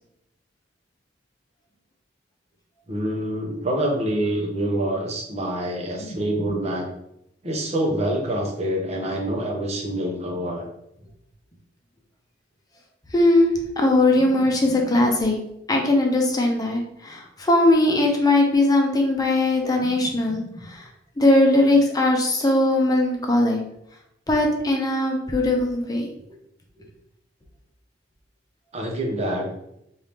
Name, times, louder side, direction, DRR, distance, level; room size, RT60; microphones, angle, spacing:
voice 1, 2.9-6.9 7.4-10.7 28.7-29.5, right 1 dB, 35° right, 0 dB, 1.0 m, -26 dB
voice 2, 6.0-6.5 13.1-13.5 13.8-15.4 15.7-20.8 21.2-23.6 24.3-26.1, left 2 dB, 20° left, 1 dB, 0.8 m, -20 dB
4.5 x 2.7 x 3.6 m, 0.79 s
head